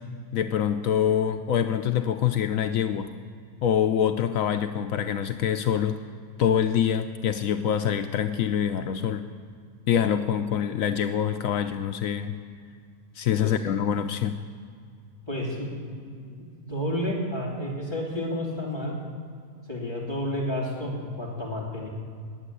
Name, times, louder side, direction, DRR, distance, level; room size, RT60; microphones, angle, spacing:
voice 1, 0.3-3.1 3.6-6.0 6.4-9.3 9.9-12.4 13.2-14.4, left 9 dB, 75° left, 8 dB, 1.0 m, -25 dB
voice 2, 15.3-19.0 19.7-21.9, equal, 15° left, -4 dB, 2.9 m, -31 dB
13.5 x 9.1 x 9.9 m, 2.2 s
omnidirectional pair, 1.5 m